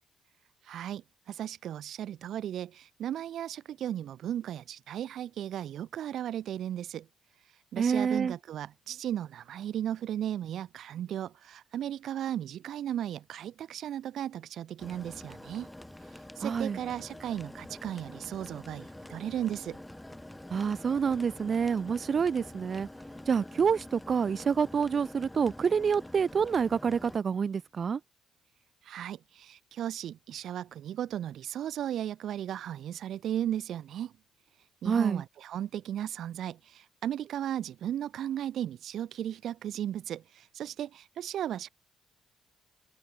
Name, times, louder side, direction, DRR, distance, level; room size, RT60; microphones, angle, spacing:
voice 1, 0.6-7.1 7.4-15.7 16.1-19.8 28.8-34.1 34.8-41.7, right 11 dB, 70° right, 0.9 m, -36 dB
voice 2, 7.8-8.3 16.4-16.8 20.5-22.9 23.3-28.0 34.8-35.2, right 6 dB, 45° right, 1.3 m, -27 dB
sound 1, 14.8-27.2, left 1 dB, 10° left, 5.1 m, -46 dB
open air
cardioid pair, 90°, 0 cm